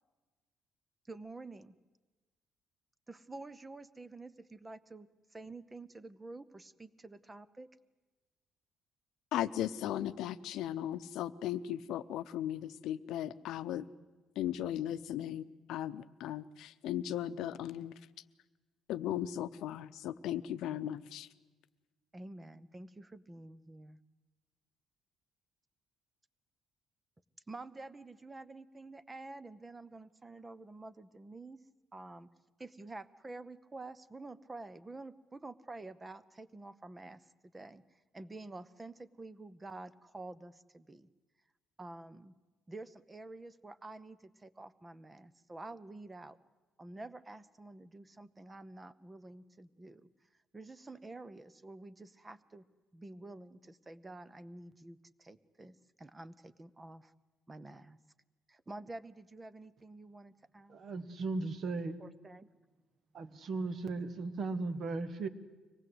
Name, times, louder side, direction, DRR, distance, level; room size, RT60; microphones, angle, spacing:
voice 1, 1.1-1.8 3.1-7.7 22.1-24.0 27.5-31.6 31.9-32.3 32.6-37.3 37.5-41.1 41.8-42.3 42.7-46.4 46.8-50.1 50.5-52.6 52.9-57.1 57.5-58.0 58.5-60.8 62.0-62.5, right 2 dB, 15° right, 15 dB, 0.7 m, -49 dB
voice 2, 9.3-13.9 14.4-17.9 18.9-21.3, left 11 dB, 80° left, 12 dB, 0.8 m, -37 dB
voice 3, 60.7-62.0 63.1-65.3, right 3 dB, 45° right, 13 dB, 1.3 m, -37 dB
24.5 x 18.5 x 8.0 m, 1.3 s
cardioid pair, 145°, 0 cm